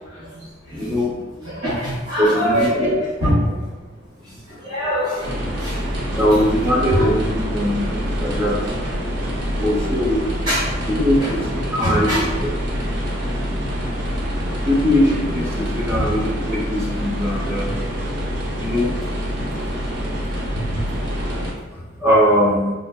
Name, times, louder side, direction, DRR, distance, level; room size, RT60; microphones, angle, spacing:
voice 1, 0.1-0.9 1.4-3.6 4.5-5.8 6.9-7.1 9.5-9.7 10.4-10.6 11.2-11.3 11.8-12.2 12.7-13.1 15.9-16.1, equal, 80° right, -13 dB, 1.4 m, -24 dB
voice 2, 0.8-1.1 2.2-3.0 6.1-8.6 9.6-10.2 10.9-11.4 11.7-12.3 14.6-17.7 18.6-18.9 22.0-22.7, equal, 15° right, -6 dB, 0.6 m, -20 dB
sound 1, 5.2-21.5, equal, 65° right, 0.7 m, -26 dB
4.2 x 2.4 x 2.2 m, 1.2 s
head